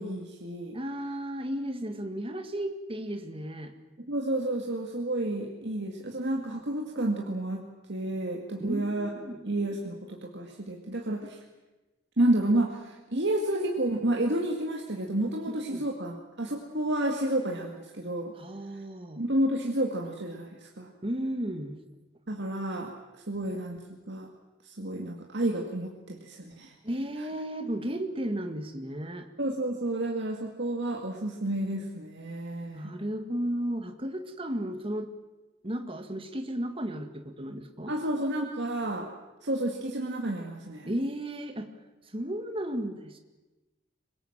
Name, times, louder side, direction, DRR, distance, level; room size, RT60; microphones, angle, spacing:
voice 1, 0.0-0.8 4.1-7.6 7.9-9.1 9.4-11.4 12.2-18.3 19.2-20.9 22.3-22.9 23.3-23.8 24.1-24.3 24.6-26.7 29.4-32.9 37.9-39.1 39.4-40.9, right 1 dB, 60° right, 1 dB, 2.2 m, -30 dB
voice 2, 0.7-3.7 8.6-9.4 15.5-15.9 18.4-19.2 21.0-21.8 26.8-29.3 32.7-35.1 35.6-38.0 40.9-41.7 42.1-43.2, right 1 dB, 30° right, 7 dB, 1.9 m, -34 dB
24.5 x 21.5 x 7.5 m, 1.1 s
head